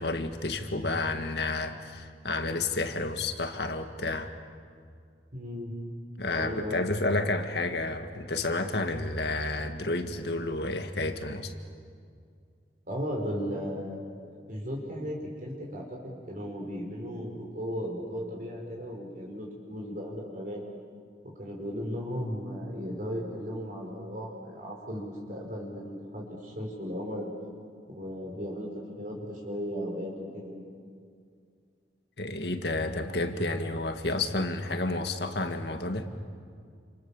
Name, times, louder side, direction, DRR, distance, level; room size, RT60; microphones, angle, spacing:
voice 1, 0.0-4.3 6.2-11.5 32.2-36.1, left 2 dB, 65° left, 7 dB, 2.0 m, -30 dB
voice 2, 5.3-5.7 6.4-6.8 12.9-14.0 14.3-20.6 21.4-27.3 27.9-28.7 29.0-30.6, equal, 50° right, -1 dB, 5.1 m, -36 dB
29.0 x 28.0 x 7.3 m, 2.2 s
head